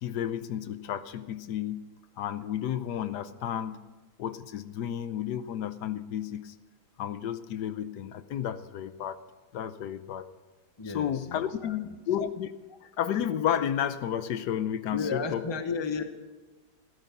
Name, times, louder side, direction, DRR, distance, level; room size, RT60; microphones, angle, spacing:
voice 1, 0.0-1.9 2.2-3.8 4.2-6.5 7.0-9.2 9.5-10.3 10.9-12.5 12.8-15.4, left 10 dB, 75° left, 13 dB, 1.3 m, -32 dB
voice 2, 10.8-11.8 14.9-16.0, left 5 dB, 20° left, 8 dB, 0.8 m, -33 dB
15.0 x 12.5 x 5.9 m, 1.3 s
omnidirectional pair, 1.8 m